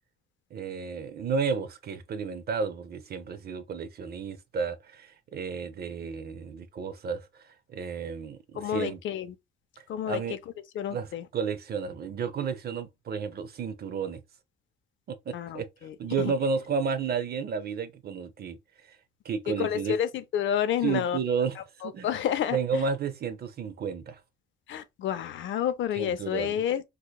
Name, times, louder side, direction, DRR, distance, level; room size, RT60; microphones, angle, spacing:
voice 1, 0.5-9.0 10.1-10.4 10.9-14.2 15.1-15.7 16.0-19.0 19.2-20.0 20.8-21.6 21.8-22.1 22.5-24.2 26.0-26.6, right 5 dB, 50° right, 0.6 m, -32 dB
voice 2, 8.5-9.3 9.9-10.2 10.7-11.2 15.3-16.0 16.2-16.3 19.5-21.2 21.8-22.8 24.7-26.8, left 9 dB, 70° left, 0.6 m, -29 dB
4.7 x 2.3 x 2.2 m
cardioid pair, 90°, 20 cm